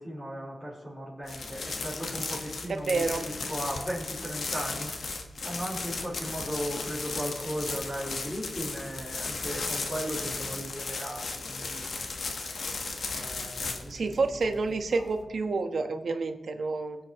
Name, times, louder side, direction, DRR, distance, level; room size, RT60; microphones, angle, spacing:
voice 1, 0.0-5.1 5.4-11.9 13.1-14.6 14.9-15.1, equal, 10° left, -8 dB, 4.1 m, -37 dB
sound 1, 1.2-15.2, left 3 dB, 75° left, 1.2 m, -36 dB
voice 2, 2.7-3.2 13.9-17.0, right 3 dB, 80° right, 6 dB, 1.1 m, -29 dB
22.5 x 7.7 x 3.0 m, 1.1 s
wide cardioid pair, 105°, 0 cm